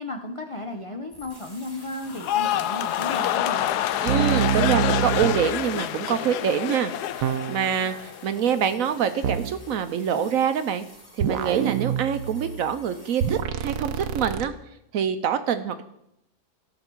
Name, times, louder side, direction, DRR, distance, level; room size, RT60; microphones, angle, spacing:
voice 1, 0.0-3.7, left 1 dB, 55° left, 3 dB, 0.3 m, -34 dB
sound 1, 1.1-13.4, left 1 dB, 15° left, 2.1 m, -51 dB
sound 2, 2.1-8.4 8.7-9.2, left 11 dB, 75° left, 1.1 m, -27 dB
voice 2, 4.0-6.9 7.2-10.8 11.2-14.5 14.9-15.8, right 8 dB, 65° right, 11 dB, 0.9 m, -25 dB
sound 3, 4.1-5.6 7.2-7.8 9.2-9.6 11.2-12.7 13.2-14.5, right 8 dB, 85° right, 1.2 m, -26 dB
16.0 x 6.5 x 4.5 m, 0.82 s
omnidirectional pair, 1.7 m